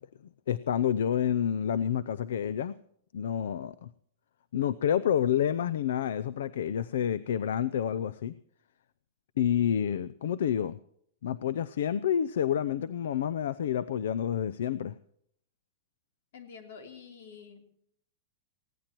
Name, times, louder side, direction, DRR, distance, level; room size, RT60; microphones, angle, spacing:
voice 1, 0.5-2.8 3.1-3.9 4.5-8.4 9.4-10.8 11.2-14.9, left 9 dB, 85° left, 18 dB, 0.5 m, -29 dB
voice 2, 16.3-17.7, left 6 dB, 70° left, 4 dB, 3.2 m, -48 dB
20.5 x 16.0 x 3.0 m, 0.69 s
supercardioid pair, 165°, 0 cm